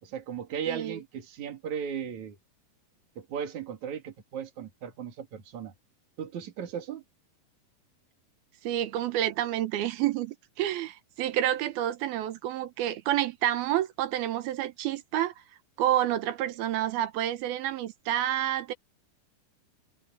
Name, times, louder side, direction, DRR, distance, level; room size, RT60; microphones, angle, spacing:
voice 1, 0.0-2.4 3.2-5.7 6.2-7.0, right 8 dB, 50° right, 3.6 m, -36 dB
voice 2, 0.7-1.0 8.6-15.3 15.8-18.7, right 12 dB, 75° right, 2.8 m, -29 dB
omnidirectional pair, 4.8 m